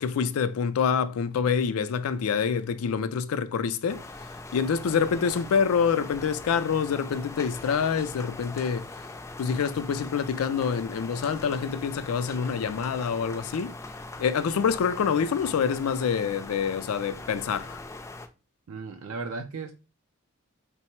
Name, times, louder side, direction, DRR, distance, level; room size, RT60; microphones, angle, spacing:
voice 1, 0.0-8.9 9.4-13.8 14.2-17.8, left 6 dB, 90° left, 0.4 m, -26 dB
sound 1, 3.9-18.3, left 2 dB, 15° left, 0.3 m, -41 dB
voice 2, 18.7-19.7, right 4 dB, 75° right, 0.4 m, -35 dB
3.5 x 2.0 x 4.3 m
head